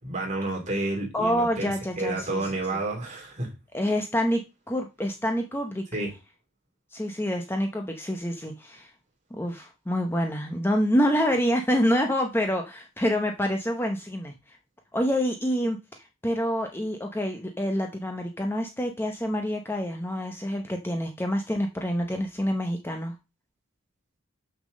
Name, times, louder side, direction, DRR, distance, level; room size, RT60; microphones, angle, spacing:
voice 1, 0.0-3.5 5.9-6.1, right 2 dB, 35° right, 1 dB, 3.0 m, -30 dB
voice 2, 1.1-2.5 3.7-4.4 4.7-5.8 6.9-8.9 9.3-14.3 14.9-15.8 16.2-23.1, equal, 10° left, 3 dB, 0.9 m, -27 dB
6.5 x 6.0 x 6.4 m, 0.27 s
head